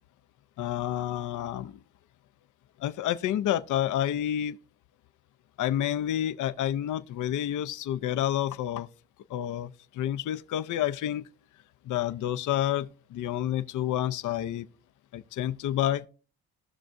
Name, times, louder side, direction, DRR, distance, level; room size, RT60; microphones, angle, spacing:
voice 1, 0.6-1.8 2.8-4.6 5.6-8.9 9.3-11.3 11.8-14.7 15.1-16.1, left 11 dB, 60° left, 0.6 m, -29 dB
17.5 x 6.0 x 2.6 m
supercardioid pair, 75°, 34 cm